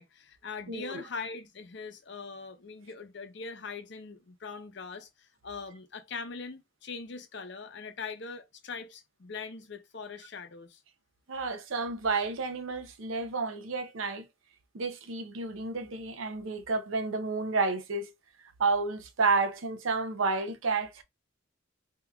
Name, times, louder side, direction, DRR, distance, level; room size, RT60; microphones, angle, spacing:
voice 1, 0.0-10.8, left 4 dB, 60° left, 0.6 m, -41 dB
voice 2, 0.7-1.0 11.3-14.2 14.7-18.1 18.6-21.0, right 4 dB, 85° right, 0.6 m, -30 dB
3.6 x 2.8 x 2.2 m
head